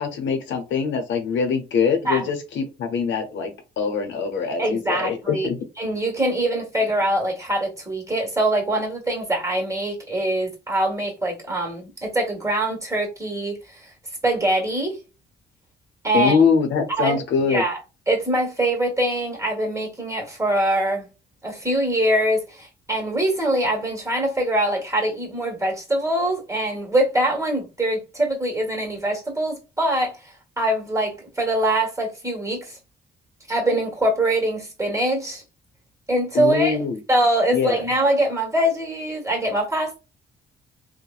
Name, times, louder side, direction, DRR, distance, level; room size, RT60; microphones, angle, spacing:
voice 1, 0.0-5.6 16.1-17.6 36.3-37.0 37.5-37.8, left 6 dB, 70° left, 0.7 m, -23 dB
voice 2, 4.6-5.5 5.8-13.9 14.2-15.0 16.0-16.4 17.0-17.2 17.5-17.8 18.1-21.1 21.4-32.8 33.5-35.4 36.1-36.8 37.1-40.0, right 1 dB, 15° right, 1.4 m, -23 dB
3.0 x 2.1 x 2.3 m
cardioid pair, 90°, 20 cm